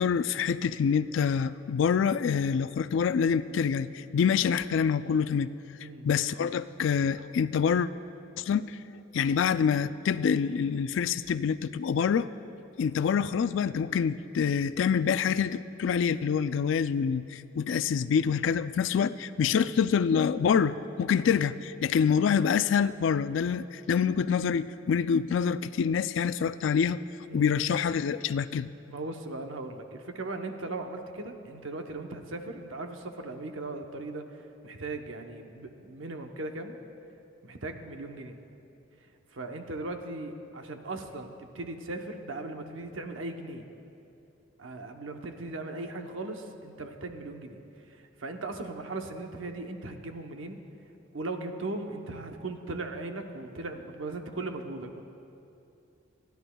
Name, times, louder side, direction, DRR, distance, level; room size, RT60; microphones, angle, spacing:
voice 1, 0.0-5.5 5.8-7.9 8.4-8.8 9.1-12.3 12.8-27.0 27.3-28.7, left 7 dB, 65° left, 14 dB, 0.3 m, -26 dB
voice 2, 28.9-34.3 34.6-36.8 37.4-38.4 39.3-43.6 44.6-47.6 47.9-50.6 51.1-55.0, right 2 dB, 75° right, 5 dB, 0.9 m, -38 dB
29.0 x 10.5 x 2.3 m, 2.7 s
head